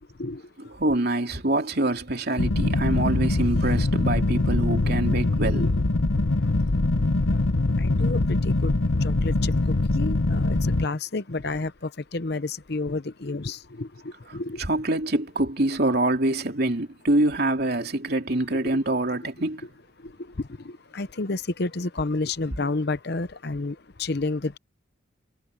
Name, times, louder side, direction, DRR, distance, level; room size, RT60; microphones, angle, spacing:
voice 1, 0.6-5.7 14.3-19.7, right 2 dB, 50° right, 3.1 m, -25 dB
sound 1, 2.4-10.9, left 2 dB, 85° left, 1.0 m, -23 dB
voice 2, 7.8-8.2 8.4-8.7 9.0-9.5 9.9-11.7 12.1-13.9 14.3-14.6 20.9-23.7 24.0-24.6, left 3 dB, 55° left, 0.8 m, -29 dB
head